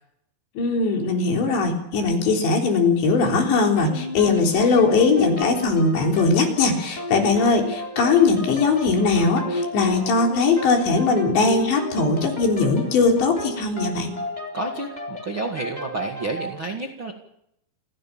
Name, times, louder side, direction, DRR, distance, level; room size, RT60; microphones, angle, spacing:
voice 1, 0.6-14.1, left 4 dB, 70° left, 2 dB, 5.9 m, -20 dB
sound 1, 3.8-16.6, left 1 dB, 10° left, 3.5 m, -33 dB
voice 2, 14.5-17.1, right 2 dB, 45° right, 1 dB, 1.8 m, -30 dB
28.5 x 16.5 x 7.3 m, 0.77 s
omnidirectional pair, 5.3 m